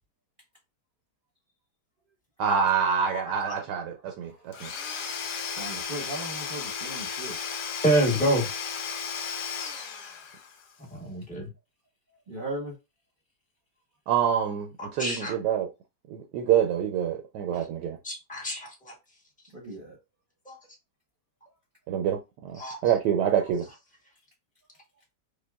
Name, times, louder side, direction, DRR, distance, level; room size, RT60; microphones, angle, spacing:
voice 1, 2.4-4.7 14.1-15.7 16.1-18.0 21.9-23.7, right 8 dB, 75° right, 1.1 m, -26 dB
Domestic sounds home sounds / Tools, 4.5-10.6, left 6 dB, 70° left, 1.2 m, -34 dB
voice 2, 5.6-7.4 12.3-12.7 19.5-19.9, right 1 dB, 40° right, 0.9 m, -37 dB
voice 3, 7.8-8.5 11.0-11.5 15.0-15.3 18.0-18.9 20.5-20.6 22.6-22.8, right 1 dB, 5° left, 0.6 m, -26 dB
5.1 x 2.2 x 2.3 m
omnidirectional pair, 1.9 m